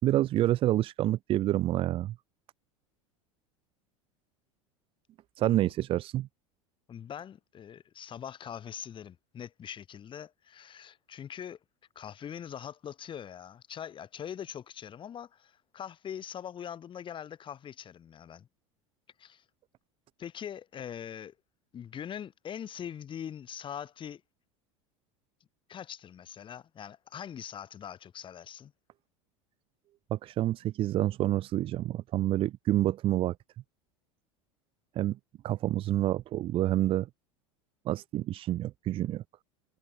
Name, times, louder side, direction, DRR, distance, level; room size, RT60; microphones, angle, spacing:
voice 1, 0.0-2.1 5.4-6.3 30.1-33.4 35.0-35.2 35.4-37.1 37.9-39.2, right 14 dB, 35° right, 0.4 m, -28 dB
voice 2, 6.9-11.6 11.9-18.5 19.2-19.4 20.2-21.3 21.7-24.2 25.7-28.7, left 9 dB, 30° left, 1.7 m, -42 dB
figure-of-eight pair, 75°, 17 cm